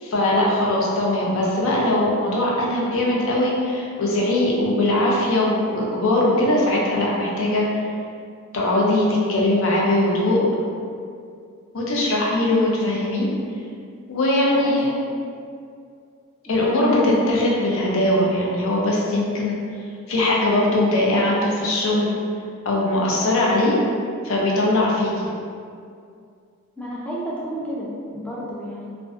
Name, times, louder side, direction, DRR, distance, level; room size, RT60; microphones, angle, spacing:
voice 1, 0.0-7.7 8.5-10.4 11.7-13.3 14.1-15.0 16.5-19.6 20.1-22.2 22.6-23.8 24.2-25.3, left 1 dB, 65° left, -4 dB, 0.5 m, -20 dB
voice 2, 14.4-14.8 16.5-16.6 16.9-17.1 26.8-28.9, equal, 5° left, -6 dB, 0.3 m, -31 dB
2.5 x 2.1 x 2.4 m, 2.3 s
head